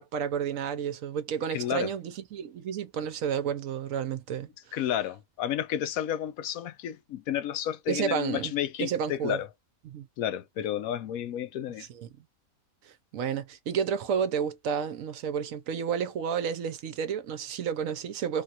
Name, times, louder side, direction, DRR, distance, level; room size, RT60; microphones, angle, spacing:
voice 1, 0.0-4.8 7.9-8.5 8.8-9.4 9.8-10.1 11.9-12.1 12.8-18.4, right 7 dB, 70° right, 1.0 m, -31 dB
voice 2, 1.5-1.9 4.7-9.5 10.2-11.9, left 10 dB, 75° left, 1.0 m, -31 dB
3.3 x 2.3 x 2.8 m
omnidirectional pair, 1.5 m